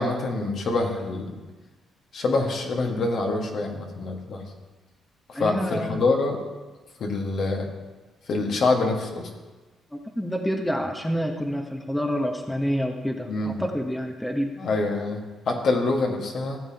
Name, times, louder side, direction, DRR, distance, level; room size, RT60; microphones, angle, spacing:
voice 1, 0.0-1.4 2.1-4.5 5.3-6.4 7.0-7.7 8.3-9.3 13.3-13.6 14.6-16.6, left 3 dB, 60° left, 1 dB, 1.5 m, -25 dB
voice 2, 5.3-6.0 9.9-14.6, equal, 5° left, 3 dB, 0.9 m, -28 dB
15.5 x 7.3 x 2.9 m, 1.2 s
cardioid pair, 90°, 0 cm